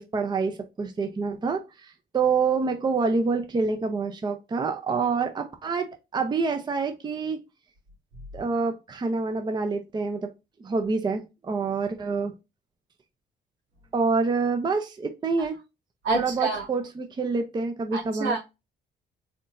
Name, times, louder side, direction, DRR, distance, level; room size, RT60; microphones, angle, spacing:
voice 1, 0.0-7.4 8.3-10.3 10.6-12.3 13.9-15.6 16.1-18.4, right 4 dB, 25° right, 0.6 m, -27 dB
voice 2, 16.0-16.7 17.9-18.4, right 3 dB, 85° right, 2.4 m, -27 dB
4.3 x 4.2 x 2.5 m
cardioid pair, 135°, 18 cm